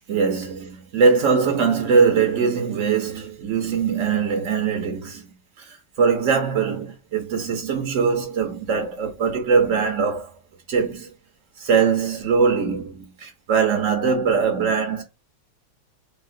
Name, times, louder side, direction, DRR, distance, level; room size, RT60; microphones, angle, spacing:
voice 1, 0.1-5.3 5.6-10.3 10.7-11.1 11.6-15.0, right 5 dB, 85° right, 0.6 m, -21 dB
3.6 x 2.1 x 2.4 m
omnidirectional pair, 2.4 m